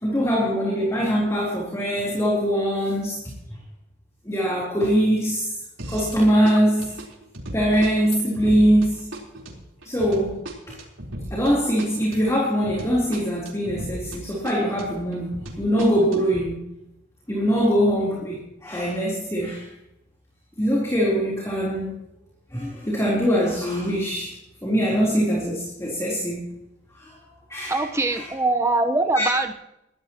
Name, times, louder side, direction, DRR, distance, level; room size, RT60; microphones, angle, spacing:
voice 1, 0.0-3.3 4.3-5.5 5.9-6.9 7.5-9.0 9.9-10.4 10.7-10.8 11.3-15.3 15.6-16.6 17.3-19.7 20.6-22.0 22.5-24.3 24.6-26.4 27.0-27.1 27.5-27.8 28.1-28.2 29.2-29.3, equal, 15° left, -4 dB, 3.7 m, -22 dB
sound 1, 5.8-6.2 6.4-14.2 14.4-16.4, right 1 dB, 85° right, 4.0 m, -37 dB
voice 2, 27.7-29.5, right 2 dB, 15° right, 6 dB, 1.0 m, -22 dB
22.5 x 13.5 x 3.0 m, 0.85 s
head